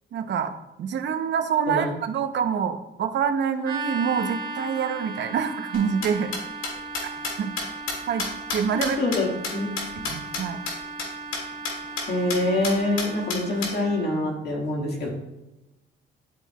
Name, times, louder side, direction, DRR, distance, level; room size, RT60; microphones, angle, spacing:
voice 1, 0.1-6.3 7.0-7.1 7.4-7.5 8.1-8.2 8.5-9.0 10.0-10.6, right 7 dB, 65° right, 8 dB, 0.8 m, -26 dB
sound 1, 3.6-14.2, right 4 dB, 45° right, 1.9 m, -37 dB
sound 2, 5.7-10.4 10.7-10.8 11.0-11.1 11.3-11.4 11.6-12.0 12.3-12.4 12.6-13.7, left 4 dB, 85° left, 2.1 m, -30 dB
voice 2, 8.7-9.7 12.1-15.1, left 1 dB, 55° left, -2 dB, 1.8 m, -25 dB
12.0 x 4.4 x 2.3 m, 0.97 s
cardioid pair, 90°, 20 cm